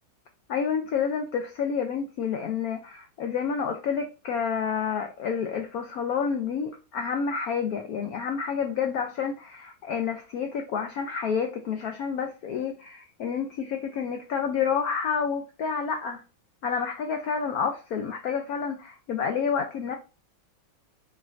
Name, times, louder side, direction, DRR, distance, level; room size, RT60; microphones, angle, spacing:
voice 1, 0.5-16.2 16.6-20.0, left 6 dB, 90° left, 0.8 m, -29 dB
4.4 x 3.5 x 2.4 m
omnidirectional pair, 2.2 m